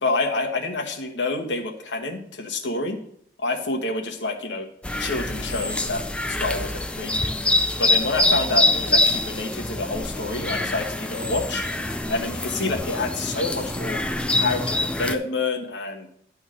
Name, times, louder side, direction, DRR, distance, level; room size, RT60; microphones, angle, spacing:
voice 1, 0.0-3.0 3.4-4.7 5.0-7.3 7.8-11.6 12.1-14.0 14.4-16.1, left 2 dB, 70° left, 1 dB, 1.3 m, -28 dB
sound 1, 4.8-15.1, left 2 dB, 5° left, 0.4 m, -25 dB
11.0 x 3.6 x 6.2 m, 0.67 s
head